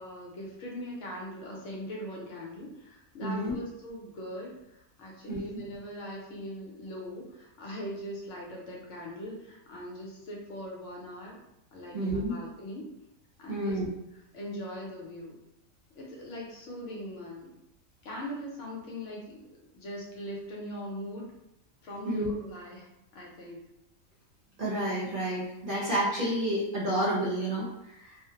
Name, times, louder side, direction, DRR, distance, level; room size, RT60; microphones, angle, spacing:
voice 1, 0.0-11.4 11.7-12.8 13.4-13.8 14.1-15.3 16.0-17.5 18.0-19.4 19.7-21.3 21.8-22.9 23.1-23.6, equal, 70° left, -3 dB, 0.9 m, -40 dB
voice 2, 3.2-3.5 5.3-5.4 11.9-12.3 13.5-13.9 22.0-22.3 24.6-28.2, right 1 dB, 50° right, -6 dB, 0.7 m, -30 dB
2.4 x 2.0 x 2.7 m, 0.86 s
omnidirectional pair, 1.4 m